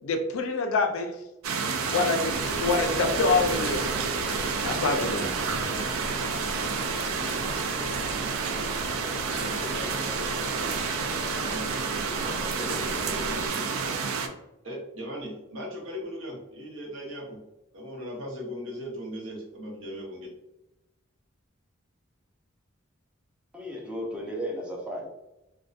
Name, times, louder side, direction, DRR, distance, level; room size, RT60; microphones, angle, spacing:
voice 1, 0.0-1.2 1.9-3.9 4.6-5.3, left 3 dB, 75° left, 5 dB, 0.4 m, -26 dB
sound 1, 1.4-14.3, right 5 dB, 90° right, 0.3 m, -30 dB
sound 2, 2.3-13.5, equal, 35° right, 0.7 m, -38 dB
voice 2, 9.2-10.0 11.5-11.7 12.4-13.7 14.6-17.4 17.7-20.3, equal, 70° right, -2 dB, 0.8 m, -38 dB
voice 3, 23.5-25.1, equal, 5° right, -2 dB, 0.4 m, -34 dB
2.6 x 2.2 x 2.3 m, 0.94 s
head